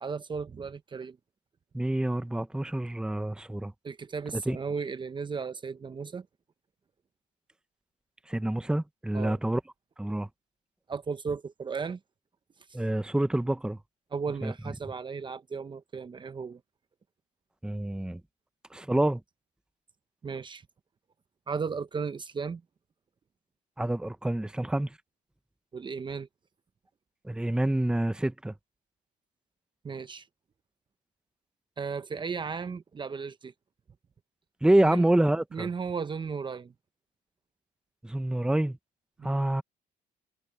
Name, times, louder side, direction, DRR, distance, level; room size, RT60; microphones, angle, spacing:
voice 1, 0.0-1.2 3.8-6.3 9.1-9.4 10.9-12.0 14.1-16.6 20.2-20.6 21.5-22.6 25.7-26.3 29.8-30.3 31.8-33.5 34.8-35.1 35.5-36.7 39.2-39.4, right 5 dB, 30° right, 0.9 m, -35 dB
voice 2, 1.7-3.7 4.3-4.6 8.3-9.6 10.0-10.3 12.7-13.8 14.4-14.5 17.6-18.2 18.7-19.2 23.8-24.9 27.2-28.5 34.6-35.7 38.0-38.8 39.2-39.6, right 1 dB, 5° right, 1.0 m, -27 dB
cardioid pair, 110°, 17 cm